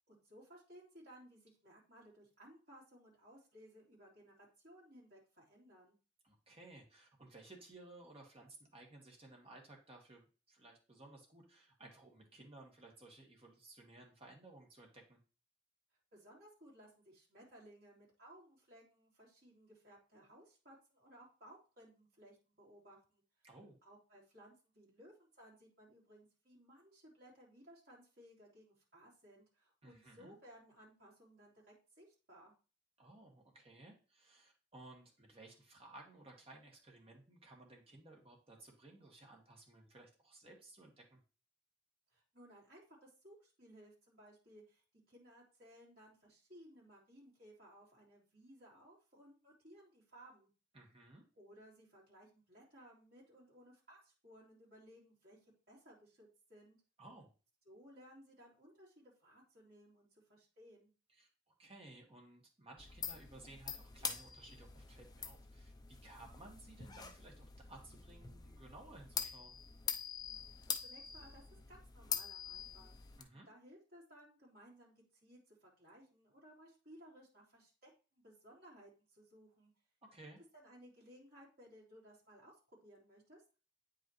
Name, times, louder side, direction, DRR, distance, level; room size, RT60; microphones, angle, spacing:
voice 1, 0.1-6.0 16.1-23.2 23.8-32.5 42.1-50.5 51.3-55.4 55.7-56.8 57.6-60.9 70.5-73.0 73.3-79.7 80.5-83.4, equal, 50° right, -5 dB, 3.4 m, -60 dB
voice 2, 6.2-15.2 23.4-23.8 29.8-30.4 33.0-41.2 50.7-51.2 57.0-57.3 61.1-61.3 61.6-69.6 73.2-73.5 80.0-80.4, right 2 dB, 30° right, 0 dB, 1.6 m, -58 dB
sound 1, 62.8-73.2, left 7 dB, 20° left, 0.5 m, -45 dB
8.9 x 5.1 x 3.1 m, 0.35 s
head